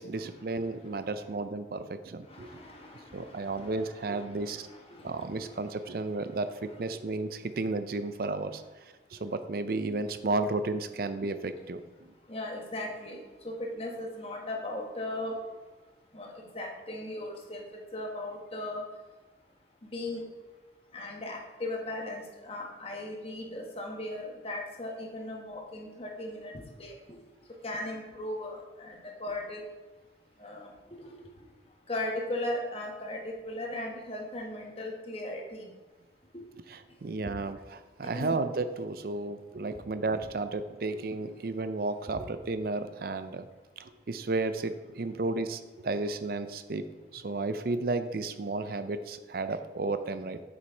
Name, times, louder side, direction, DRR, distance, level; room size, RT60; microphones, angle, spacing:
voice 1, 0.0-2.6 3.1-4.7 5.0-8.6 9.1-11.8 36.7-43.5 43.8-46.9 47.1-50.4, right 3 dB, 55° right, 11 dB, 0.5 m, -33 dB
voice 2, 2.3-5.7 12.3-13.2 13.4-15.4 16.1-17.6 17.9-18.8 19.8-20.2 20.9-26.5 26.8-27.2 27.6-29.6 30.4-31.1 31.9-35.7 36.3-36.4 37.3-37.4 38.1-38.4 42.2-42.3, left 1 dB, 30° left, 1 dB, 1.2 m, -38 dB
6.5 x 6.3 x 4.5 m, 1.2 s
head